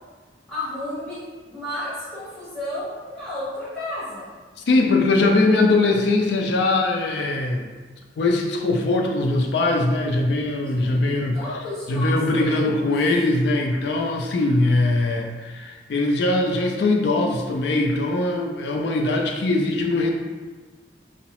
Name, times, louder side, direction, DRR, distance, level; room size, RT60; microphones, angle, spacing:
voice 1, 0.5-1.2 1.5-4.3 10.7-13.3, left 1 dB, 5° left, -14 dB, 1.3 m, -32 dB
voice 2, 4.7-7.6 8.2-11.4 11.9-20.1, left 2 dB, 65° left, 2 dB, 0.4 m, -21 dB
2.7 x 2.0 x 2.9 m, 1.4 s
head